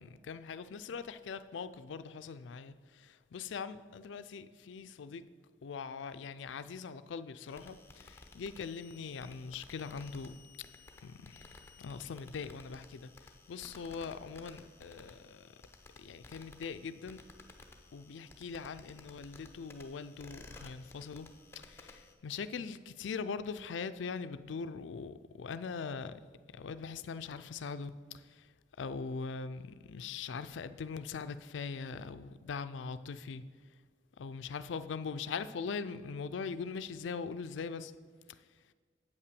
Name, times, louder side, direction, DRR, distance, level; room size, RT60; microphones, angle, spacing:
voice 1, 0.0-5.3 5.6-10.3 11.0-15.5 16.0-17.2 17.9-21.3 21.6-26.2 26.5-28.5 28.8-33.4 34.2-37.9 38.3-38.5, left 5 dB, 80° left, 0.4 m, -41 dB
sound 1, 7.5-22.1, left 3 dB, 15° left, 0.6 m, -56 dB
8.1 x 5.6 x 6.8 m
head